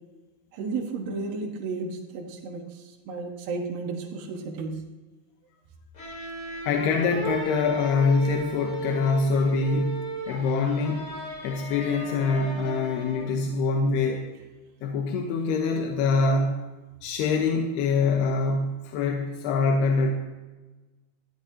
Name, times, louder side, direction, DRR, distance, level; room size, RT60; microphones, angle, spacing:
voice 1, 0.5-4.8, right 4 dB, 70° right, 0 dB, 3.0 m, -33 dB
sound 1, 5.9-13.4, equal, 30° left, 3.0 m, -36 dB
voice 2, 6.6-11.1 11.4-14.3 14.8-16.6 17.0-20.1, left 4 dB, 85° left, 2 dB, 3.1 m, -24 dB
19.5 x 13.0 x 2.8 m, 1.2 s
omnidirectional pair, 4.6 m